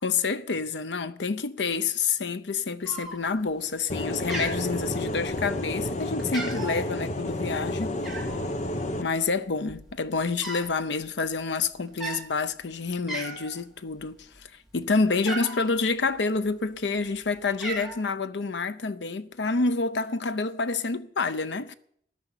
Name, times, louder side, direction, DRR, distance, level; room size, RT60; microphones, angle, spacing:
voice 1, 0.0-8.0 9.0-21.7, left 4 dB, 80° left, 0.7 m, -28 dB
Cat, 2.8-3.5 3.8-4.0 4.3-5.3 5.8-5.9 6.2-6.8 8.0-8.4 9.2-9.3 9.6-10.7 11.0-11.2 11.9-12.2 12.7-12.8 13.1-13.6 14.0-15.7 16.5-17.1 17.3-18.0, right 2 dB, ahead, 3.0 m, -36 dB
sound 1, 3.9-9.0, left 1 dB, 40° left, 1.0 m, -31 dB
14.0 x 10.0 x 5.8 m
head